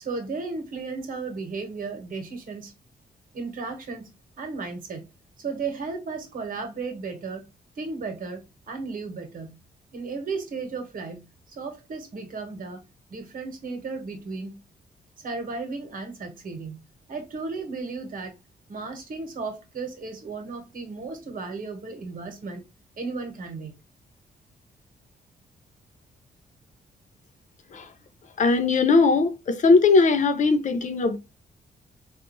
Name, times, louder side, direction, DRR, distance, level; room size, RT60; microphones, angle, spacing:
voice 1, 0.0-2.7 3.3-4.1 4.4-5.0 5.4-7.5 7.7-8.4 8.7-9.6 9.9-12.8 13.1-14.6 15.2-16.8 17.1-18.3 18.7-22.6 23.0-23.7, right 4 dB, 60° right, 1.2 m, -34 dB
voice 2, 28.4-31.2, left 4 dB, 50° left, 0.5 m, -19 dB
3.8 x 2.4 x 2.9 m
cardioid pair, 105°, 16 cm